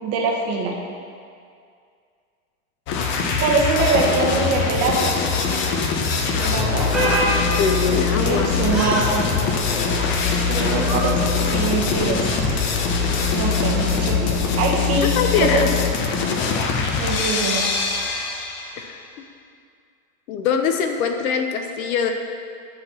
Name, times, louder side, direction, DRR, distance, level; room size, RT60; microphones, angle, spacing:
voice 1, 0.0-0.8 3.4-5.2 6.3-6.9 7.9-9.3 10.5-12.6 13.3-15.1 15.4-15.7 17.0-17.7, right 3 dB, 35° right, -1 dB, 0.9 m, -23 dB
sound 1, 2.9-18.8, left 5 dB, 30° left, 0.5 m, -22 dB
sound 2, 6.3-14.5, right 1 dB, 5° right, 1.0 m, -28 dB
voice 2, 7.6-8.5 15.2-15.7 18.8-19.0 20.3-22.1, left 6 dB, 85° left, 5 dB, 0.7 m, -22 dB
9.3 x 4.0 x 2.8 m, 2.3 s
supercardioid pair, 130°, 41 cm